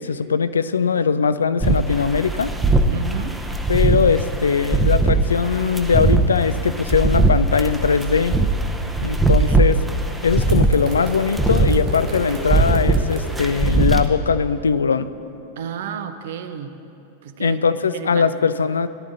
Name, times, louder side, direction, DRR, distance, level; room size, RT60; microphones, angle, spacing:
voice 1, 0.0-2.5 3.7-8.4 9.0-9.8 10.2-15.1 17.4-18.9, left 5 dB, 70° left, 13 dB, 0.3 m, -20 dB
sound 1, 1.6-14.1, right 2 dB, 5° right, 0.7 m, -20 dB
voice 2, 2.9-3.4 9.2-9.7 15.6-16.7 17.2-17.6 17.9-18.3, right 8 dB, 55° right, 10 dB, 0.6 m, -31 dB
sound 2, 10.4-13.4, right 1 dB, 35° right, 2.2 m, -34 dB
17.5 x 11.0 x 2.6 m, 2.8 s
figure-of-eight pair, 90°, 0 cm